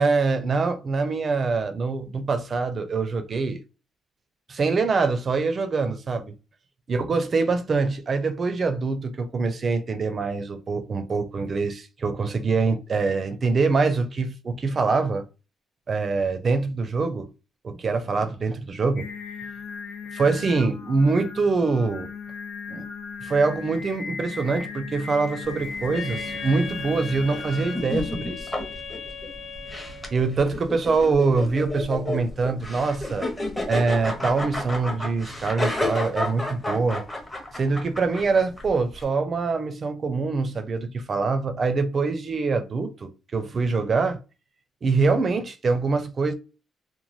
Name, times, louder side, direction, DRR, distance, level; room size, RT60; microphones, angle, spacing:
voice 1, 0.0-3.6 4.5-6.3 6.9-15.2 15.9-17.3 17.6-19.1 20.1-22.1 22.7-22.9 23.2-28.5 30.1-33.3 33.7-37.0 37.5-44.2 44.8-46.3, right 4 dB, 35° right, 0.5 m, -24 dB
Singing, 19.0-27.8, left 5 dB, 65° left, 0.5 m, -37 dB
sound 1, 25.4-39.0, left 1 dB, 10° left, 0.7 m, -32 dB
Wind instrument woodwind instrument, 25.9-30.4, left 4 dB, 35° left, 0.9 m, -38 dB
3.1 x 2.1 x 2.6 m
cardioid pair, 155°, 0 cm